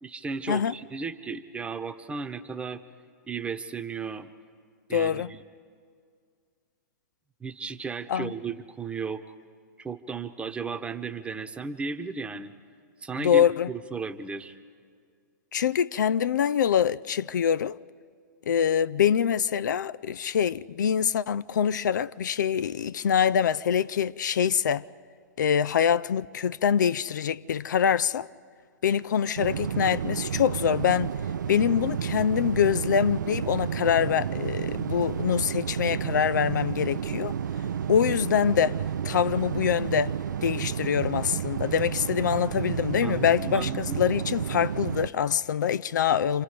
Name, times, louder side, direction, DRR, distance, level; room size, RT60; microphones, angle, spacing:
voice 1, 0.0-2.8 3.3-4.3 4.9-5.4 7.4-9.2 9.8-12.5 13.0-14.6 43.0-44.0, right 4 dB, 10° right, 1.1 m, -35 dB
voice 2, 4.9-5.3 8.1-8.3 13.2-13.7 15.5-17.8 18.5-24.8 25.4-28.3 28.8-31.1 31.5-37.3 37.9-40.1 40.4-46.4, left 8 dB, 80° left, 0.5 m, -25 dB
sound 1, 29.4-45.1, right 8 dB, 85° right, 0.5 m, -31 dB
29.5 x 25.5 x 5.1 m
hypercardioid pair, 120°, 10 cm